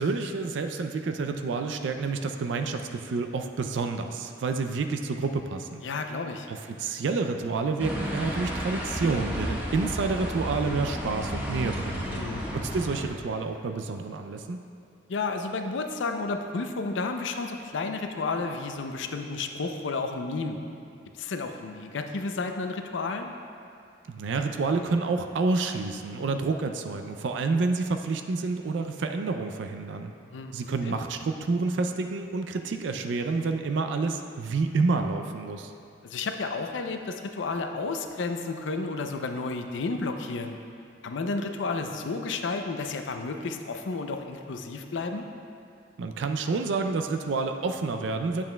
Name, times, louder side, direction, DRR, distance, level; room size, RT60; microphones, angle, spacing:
voice 1, 0.0-5.8 6.5-12.1 12.5-14.6 24.1-30.1 30.5-35.7 46.0-48.4, right 4 dB, 80° right, 6 dB, 0.4 m, -29 dB
voice 2, 5.8-6.5 12.1-12.4 15.1-20.6 21.1-23.3 30.3-30.5 30.9-31.0 36.0-40.6 41.0-45.2, left 3 dB, 90° left, 5 dB, 0.5 m, -32 dB
sound 1, 7.8-13.1, equal, 10° right, 1.0 m, -32 dB
9.5 x 7.2 x 2.2 m, 2.6 s
head